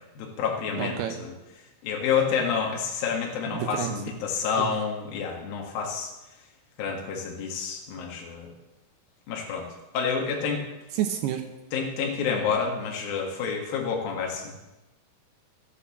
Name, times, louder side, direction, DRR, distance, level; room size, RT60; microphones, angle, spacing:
voice 1, 0.1-1.3 1.8-6.1 6.8-8.5 9.3-9.7 9.9-10.6 11.7-14.7, left 6 dB, 60° left, -1 dB, 3.2 m, -29 dB
voice 2, 0.7-1.2 3.5-3.9 4.6-4.7 10.9-11.4, right 11 dB, 75° right, 6 dB, 2.5 m, -29 dB
13.5 x 8.5 x 7.2 m, 1.0 s
omnidirectional pair, 5.2 m